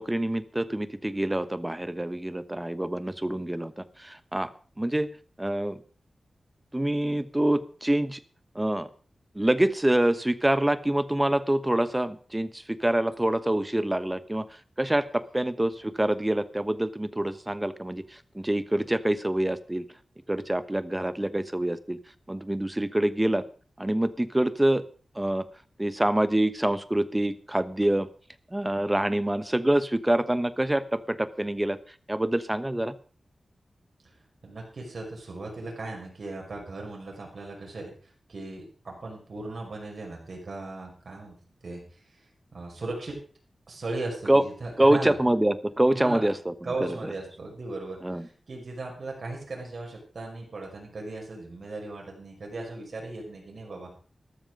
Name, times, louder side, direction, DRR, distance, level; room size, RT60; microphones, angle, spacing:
voice 1, 0.0-4.5 4.8-5.1 5.4-5.8 6.7-8.2 8.5-8.9 9.3-14.4 14.8-19.8 20.3-22.0 22.3-23.4 23.8-24.8 25.1-25.4 25.8-28.1 28.5-31.8 32.1-32.9 44.3-44.4 44.8-46.5 46.8-47.1 48.0-48.3, right 1 dB, 15° right, 14 dB, 1.1 m, -26 dB
voice 2, 34.4-37.9 38.3-41.4 41.6-41.8 42.5-43.2 43.7-45.2 45.9-46.3 46.6-54.0, right 2 dB, 60° right, -1 dB, 5.7 m, -37 dB
13.5 x 13.0 x 5.1 m, 0.40 s
wide cardioid pair, 95°, 0 cm